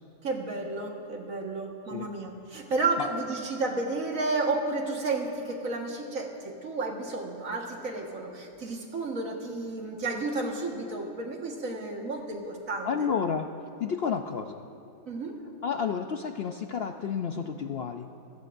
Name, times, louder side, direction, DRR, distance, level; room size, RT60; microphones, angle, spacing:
voice 1, 0.2-13.1 15.1-15.4, right 3 dB, 65° right, 1 dB, 1.9 m, -32 dB
voice 2, 12.8-13.5 13.8-14.7 15.6-18.1, left 6 dB, 65° left, 6 dB, 0.6 m, -31 dB
27.5 x 15.0 x 2.6 m, 2.7 s
omnidirectional pair, 1.5 m